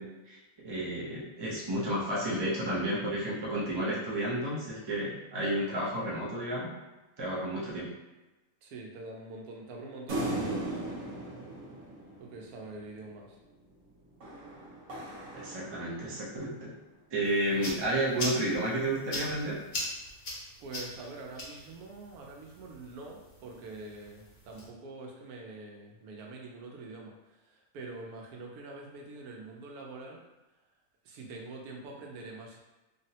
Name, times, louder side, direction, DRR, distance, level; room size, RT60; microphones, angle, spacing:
voice 1, 0.0-6.7 7.2-7.9 15.3-16.7 17.1-19.6, right 1 dB, 40° right, -6 dB, 0.3 m, -32 dB
voice 2, 8.6-10.8 12.2-13.4 20.6-30.2 31.0-32.6, right 2 dB, 85° right, 0 dB, 1.1 m, -45 dB
sound 1, 10.1-12.8 14.2-16.3, right 1 dB, 65° right, 1.2 m, -37 dB
sound 2, 17.2-24.7, left 1 dB, 45° left, 0.7 m, -41 dB
3.4 x 2.0 x 2.7 m, 1.1 s
omnidirectional pair, 1.5 m